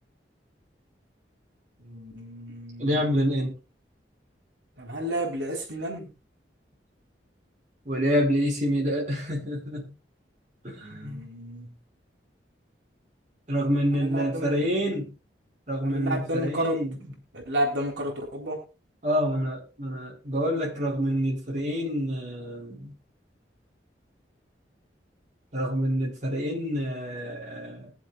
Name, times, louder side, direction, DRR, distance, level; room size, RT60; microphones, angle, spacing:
voice 1, 1.8-3.1 4.8-6.1 10.8-11.8 13.7-14.7 15.8-16.8 17.3-18.7, equal, 80° right, 3.7 m, -32 dB
voice 2, 2.8-3.5 7.8-9.9 10.6-11.2 13.5-15.1 15.7-16.9 19.0-22.9 25.5-27.9, equal, 40° right, 5.0 m, -27 dB
22.0 x 7.5 x 2.4 m
head